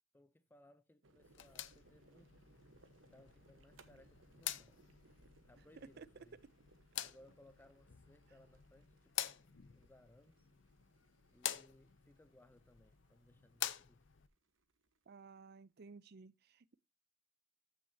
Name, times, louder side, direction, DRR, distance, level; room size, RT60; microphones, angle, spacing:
voice 1, 0.1-2.4 3.1-4.8 5.5-6.4 6.9-10.5 11.3-14.0, left 1 dB, 10° left, 0.5 m, -65 dB
sound 1, 1.0-15.5, right 3 dB, 85° right, 1.2 m, -69 dB
sound 2, 1.2-14.3, left 12 dB, 65° left, 0.6 m, -48 dB
voice 2, 5.8-6.1 15.1-16.7, right 4 dB, 55° right, 0.5 m, -55 dB
14.0 x 6.4 x 2.8 m
head